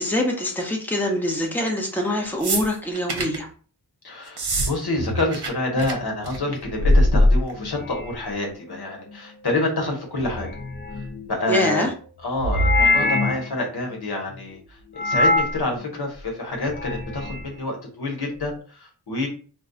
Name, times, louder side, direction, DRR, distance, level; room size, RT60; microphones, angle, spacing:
voice 1, 0.0-3.5 11.5-11.9, left 1 dB, 5° left, 0 dB, 0.8 m, -24 dB
sound 1, 2.4-3.4 4.3-4.7 5.0-5.5 5.8-5.9 6.2-6.5 7.5-7.6, right 3 dB, 75° right, 0.8 m, -27 dB
voice 2, 4.0-10.5 10.9-11.9 12.2-19.3, left 2 dB, 75° left, 0 dB, 1.0 m, -27 dB
sound 2, 5.0-5.2 6.6-8.3 10.2-11.3 12.4-13.5 15.0-15.6 16.6-17.4, left 2 dB, 25° left, 0.4 m, -21 dB
2.3 x 2.2 x 3.8 m, 0.39 s
wide cardioid pair, 50°, 39 cm